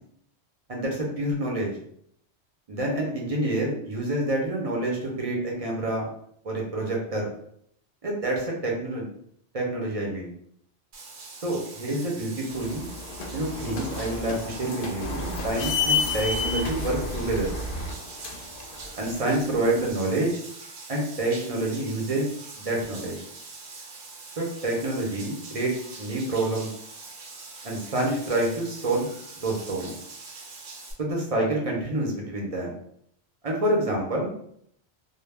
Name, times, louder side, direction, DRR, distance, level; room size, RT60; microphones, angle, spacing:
voice 1, 0.7-1.7 2.7-6.1 6.4-7.3 8.0-9.1 9.5-10.3 11.4-12.9 13.3-17.5 19.0-20.3 20.9-22.3 22.6-23.2 24.4-26.7 27.6-29.1 29.4-30.0 31.0-32.7 33.4-34.3, right 1 dB, 40° right, -2 dB, 0.5 m, -27 dB
Bathtub (filling or washing), 10.9-30.9, right 3 dB, 80° right, 0.9 m, -43 dB
sound 1, 12.5-19.9, left 3 dB, 60° left, 0.6 m, -31 dB
2.2 x 2.0 x 3.2 m, 0.68 s
omnidirectional pair, 1.1 m